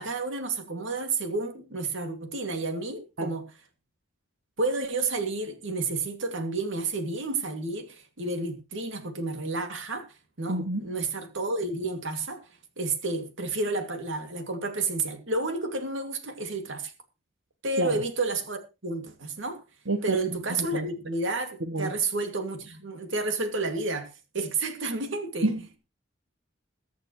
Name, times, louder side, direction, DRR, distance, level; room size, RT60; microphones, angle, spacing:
voice 1, 0.0-3.4 4.6-10.1 10.4-12.4 12.8-16.9 17.6-19.6 20.0-25.5, right 3 dB, 70° right, 2.4 m, -31 dB
voice 2, 10.5-10.9 17.8-18.0 19.9-20.2 20.5-20.9 21.6-21.9 25.4-25.8, right 1 dB, 85° right, 1.4 m, -29 dB
22.0 x 8.1 x 3.2 m
head